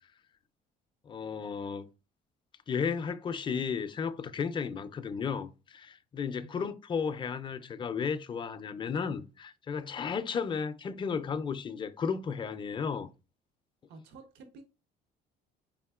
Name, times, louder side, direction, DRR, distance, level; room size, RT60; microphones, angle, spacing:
voice 1, 1.1-1.8 2.7-13.1, left 6 dB, 30° left, 0.4 m, -34 dB
voice 2, 13.9-14.6, right 3 dB, 85° right, 0.6 m, -50 dB
4.1 x 3.6 x 2.3 m
cardioid pair, 110°, 17 cm